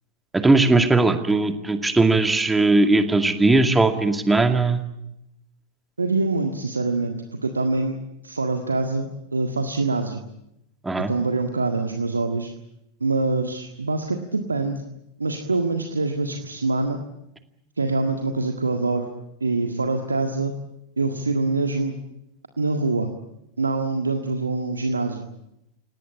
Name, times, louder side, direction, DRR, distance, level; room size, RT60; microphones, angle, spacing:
voice 1, 0.3-4.8 10.8-11.1, right 2 dB, 10° right, 7 dB, 2.2 m, -19 dB
voice 2, 6.0-8.0 8.2-10.2 11.1-12.5 13.0-14.8 15.2-17.0 17.8-19.1 19.4-20.5 21.0-22.0 22.6-23.1 23.6-25.3, right 3 dB, 80° right, 5 dB, 1.7 m, -24 dB
27.0 x 18.5 x 8.9 m, 0.85 s
figure-of-eight pair, 90°, 0 cm